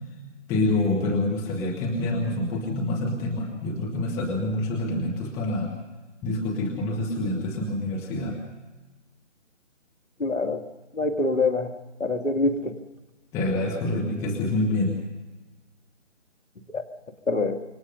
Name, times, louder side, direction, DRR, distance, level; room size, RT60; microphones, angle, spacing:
voice 1, 0.5-5.7 6.2-8.4 13.3-14.9, left 2 dB, 10° left, -2 dB, 1.6 m, -26 dB
voice 2, 10.2-10.6 11.0-11.7 12.0-12.7 16.7-16.8 17.3-17.5, left 3 dB, 80° left, 6 dB, 2.4 m, -24 dB
27.0 x 24.0 x 5.5 m, 1.1 s
figure-of-eight pair, 150°, 37 cm